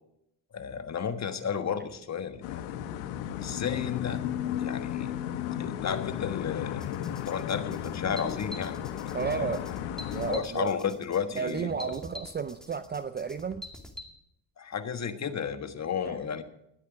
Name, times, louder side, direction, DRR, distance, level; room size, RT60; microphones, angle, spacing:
voice 1, 0.5-2.6 3.4-4.2 4.6-5.1 5.6-6.8 7.2-9.6 10.3-11.9 14.6-16.4, left 7 dB, 35° left, 9 dB, 1.5 m, -33 dB
sound 1, 2.4-10.4, left 10 dB, 70° left, 1.3 m, -34 dB
sound 2, 6.8-14.1, left 1 dB, ahead, 2.4 m, -45 dB
voice 2, 9.1-9.7 10.1-10.7 11.3-13.6 16.1-16.2, right 6 dB, 20° right, 12 dB, 0.5 m, -32 dB
20.5 x 8.3 x 5.0 m, 0.80 s
supercardioid pair, 90°, 50 cm